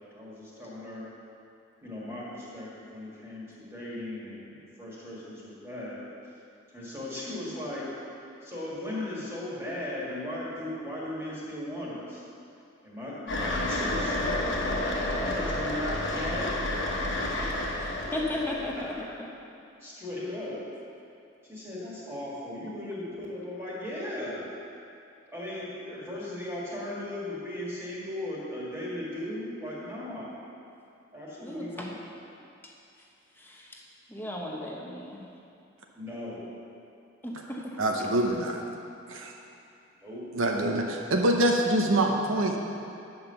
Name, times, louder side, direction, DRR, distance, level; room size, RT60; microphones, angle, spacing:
voice 1, 0.1-1.0 1.8-6.0 6.7-7.9 8.4-12.2 12.8-14.8 15.2-17.5 18.8-18.9 19.8-20.6 21.4-24.4 25.3-30.4 31.1-32.0 36.0-36.5 40.0-40.2, left 1 dB, 10° right, -7 dB, 1.8 m, -37 dB
sound 1, 13.3-19.0, left 1 dB, 60° left, 1.2 m, -30 dB
voice 2, 18.1-18.9 31.4-31.7 33.4-33.6 34.1-35.2 37.2-37.7, left 1 dB, 10° left, -2 dB, 0.8 m, -34 dB
voice 3, 37.8-38.6 39.1-39.3 40.3-42.6, right 1 dB, 70° right, 2 dB, 0.8 m, -25 dB
8.8 x 5.5 x 6.8 m, 2.6 s
head